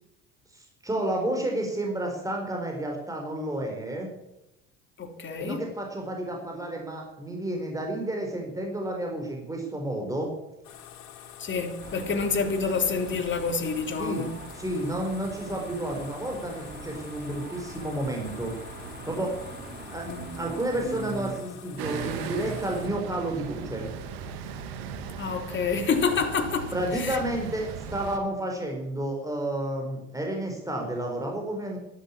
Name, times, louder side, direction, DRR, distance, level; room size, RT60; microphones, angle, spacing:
voice 1, 0.5-4.1 5.4-10.3 14.0-14.3 14.5-18.5 19.1-19.4 19.9-20.1 20.3-23.9 26.7-31.8, right 1 dB, 10° right, 1 dB, 4.4 m, -31 dB
voice 2, 5.0-5.6 11.4-14.4 20.1-20.3 25.2-27.2, left 5 dB, 35° left, 5 dB, 3.4 m, -28 dB
sound 1, 10.6-22.9, left 9 dB, 60° left, 3.2 m, -47 dB
sound 2, 11.8-21.4, right 4 dB, 30° right, 3.9 m, -42 dB
sound 3, 21.8-28.2, right 6 dB, 70° right, 2.1 m, -37 dB
12.5 x 11.5 x 8.6 m, 0.92 s
hypercardioid pair, 70°, 32 cm